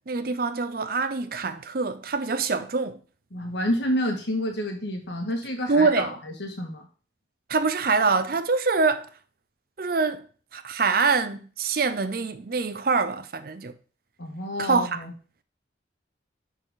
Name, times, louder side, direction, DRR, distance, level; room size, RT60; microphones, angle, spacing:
voice 1, 0.1-3.0 5.7-6.1 7.5-9.1 9.8-10.3 10.5-13.8 14.6-15.0, right 4 dB, 50° right, 0.6 m, -25 dB
voice 2, 3.3-6.1 6.4-6.9 14.2-15.1, equal, 65° left, 1.9 m, -29 dB
10.5 x 4.5 x 3.9 m
head